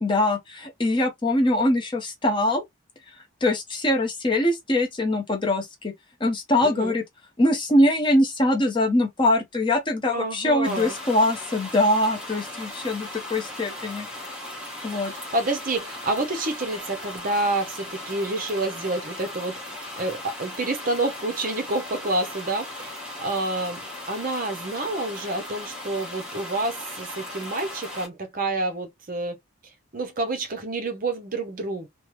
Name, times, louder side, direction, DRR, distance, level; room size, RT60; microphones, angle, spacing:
voice 1, 0.0-2.6 3.4-5.9 6.2-7.0 7.4-14.1 14.8-15.1, left 1 dB, 20° left, 0.6 m, -23 dB
voice 2, 6.6-7.0 10.1-11.0 15.0-19.6 19.9-23.8 24.1-29.4 29.9-31.9, right 2 dB, 40° right, 0.7 m, -28 dB
sound 1, 10.6-28.1, left 1 dB, 5° right, 1.0 m, -37 dB
3.2 x 2.1 x 2.9 m
head